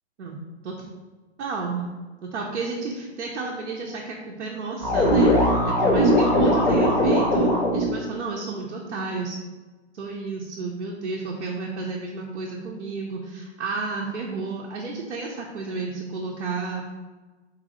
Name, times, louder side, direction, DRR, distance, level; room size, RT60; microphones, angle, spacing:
voice 1, 0.2-0.9 1.4-1.8 2.2-9.4 9.9-16.8, right 4 dB, 90° right, -2 dB, 0.8 m, -32 dB
sound 1, 4.8-7.9, equal, 5° left, 0.5 m, -19 dB
4.0 x 2.7 x 4.1 m, 1.3 s
hypercardioid pair, 135°, 35 cm